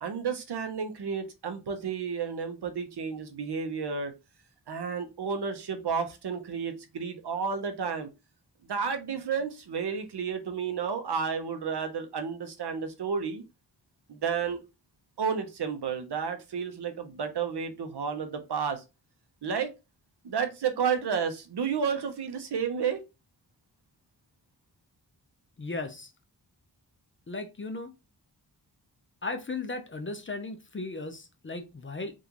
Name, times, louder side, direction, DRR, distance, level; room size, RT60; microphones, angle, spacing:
voice 1, 0.0-4.1 4.7-8.1 8.6-13.4 14.1-14.6 15.2-18.8 19.4-19.7 20.2-23.0, right 6 dB, 70° right, 0.7 m, -31 dB
voice 2, 25.6-26.1 27.3-27.9 29.2-32.1, left 3 dB, 30° left, 0.5 m, -36 dB
3.7 x 2.5 x 2.8 m
wide cardioid pair, 105°, 41 cm